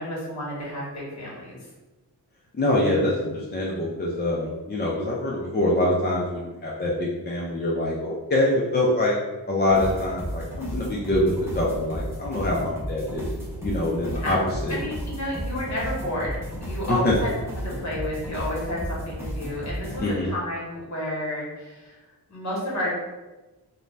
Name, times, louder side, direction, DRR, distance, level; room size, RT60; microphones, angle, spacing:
voice 1, 0.0-1.6 14.1-14.3 14.7-16.3 16.6-17.3 17.6-22.9, left 1 dB, 45° left, -5 dB, 1.2 m, -31 dB
voice 2, 2.5-9.1 9.5-13.3 13.6-14.7 16.9-17.1 20.0-20.3, left 1 dB, 25° left, -4 dB, 0.4 m, -24 dB
sound 1, 9.7-20.0, equal, 5° right, 0.8 m, -33 dB
2.5 x 2.2 x 3.2 m, 1.1 s
wide cardioid pair, 90°, 40 cm